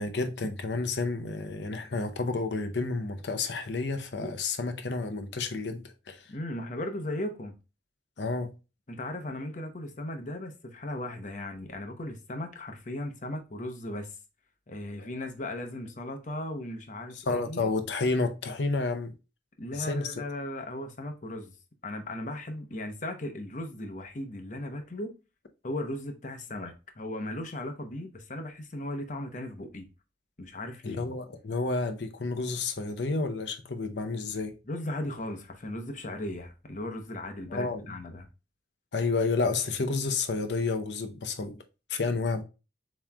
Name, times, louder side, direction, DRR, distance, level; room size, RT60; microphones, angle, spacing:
voice 1, 0.0-6.2 8.2-8.5 17.1-19.1 19.7-20.1 30.8-34.6 37.5-37.9 38.9-41.6 41.9-42.4, left 3 dB, 75° left, 0.7 m, -30 dB
voice 2, 6.3-7.5 8.9-14.2 14.7-17.7 19.6-21.5 21.8-25.1 25.6-29.9 30.4-31.1 34.7-38.3, left 1 dB, 45° left, 0.8 m, -37 dB
7.1 x 3.1 x 2.3 m
head